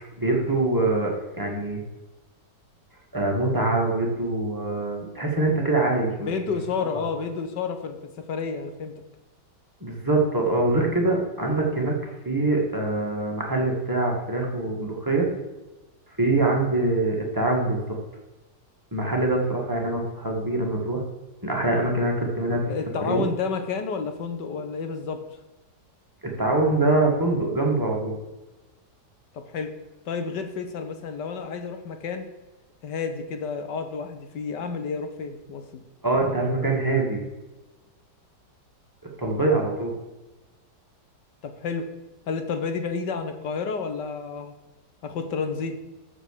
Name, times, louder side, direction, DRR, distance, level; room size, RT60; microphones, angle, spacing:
voice 1, 0.2-1.8 3.1-6.1 9.8-15.3 16.2-17.8 18.9-21.0 21.4-22.6 23.1-23.3 26.2-28.2 36.0-37.2 39.2-39.9, right 2 dB, 10° right, -1 dB, 2.1 m, -24 dB
voice 2, 6.2-8.9 22.5-25.2 29.3-29.7 30.1-32.3 32.8-35.8 41.4-41.9 42.3-44.5 45.0-45.8, left 5 dB, 80° left, 7 dB, 1.8 m, -30 dB
13.5 x 4.9 x 6.8 m, 1.1 s
omnidirectional pair, 1.8 m